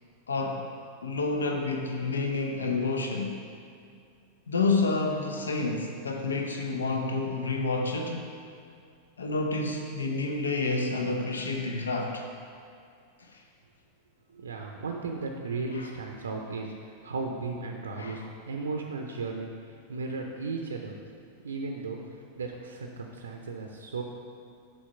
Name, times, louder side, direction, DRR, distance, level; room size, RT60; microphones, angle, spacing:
voice 1, 0.3-0.7 1.0-3.4 4.5-8.3 9.2-12.3 13.2-13.4 15.7-15.9 17.9-18.3, left 3 dB, 70° left, 2 dB, 0.6 m, -29 dB
voice 2, 14.3-20.9 21.4-22.0 22.4-24.0, right 3 dB, 70° right, 2 dB, 0.5 m, -35 dB
7.2 x 4.4 x 5.6 m, 2.3 s
figure-of-eight pair, 90°, 0 cm